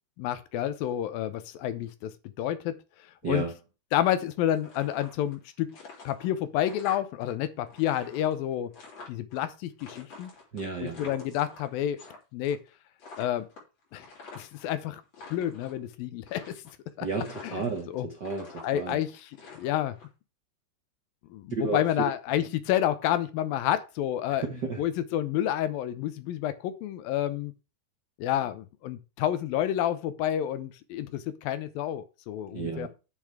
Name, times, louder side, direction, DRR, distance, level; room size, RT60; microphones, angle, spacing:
voice 1, 0.2-2.8 3.2-3.5 3.9-5.8 6.0-8.7 9.1-10.3 10.8-12.0 12.3-12.6 13.2-13.5 13.9-14.1 14.4-15.0 15.3-16.6 17.0-17.1 17.4-17.6 17.9-18.1 18.6-19.3 19.6-19.9 21.3-24.4 24.8-27.5 28.2-32.9, left 11 dB, 75° left, 2.5 m, -29 dB
sound 1, 4.5-5.4 5.7-7.3 7.6-9.4 9.8-12.2 12.4-12.7 13.0-14.7 15.0-15.8 16.3-16.9 17.2-17.9 18.2-20.1, left 4 dB, 45° left, 4.7 m, -47 dB
voice 2, 10.5-11.1 17.0-19.0 21.5-21.8 24.3-24.8 32.5-32.9, right 4 dB, 80° right, 0.9 m, -33 dB
8.5 x 7.2 x 4.9 m
omnidirectional pair, 4.4 m